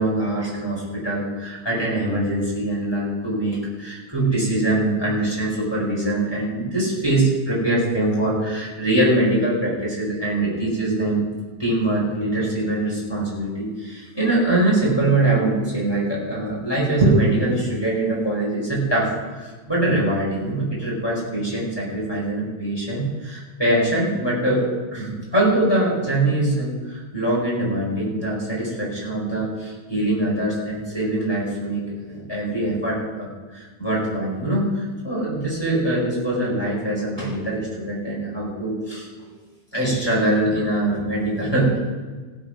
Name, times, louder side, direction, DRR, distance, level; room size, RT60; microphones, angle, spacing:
voice 1, 0.0-11.2 11.6-24.7 24.9-39.4 39.7-41.8, right 1 dB, 5° left, -6 dB, 3.8 m, -23 dB
17.0 x 7.6 x 5.9 m, 1.4 s
omnidirectional pair, 5.8 m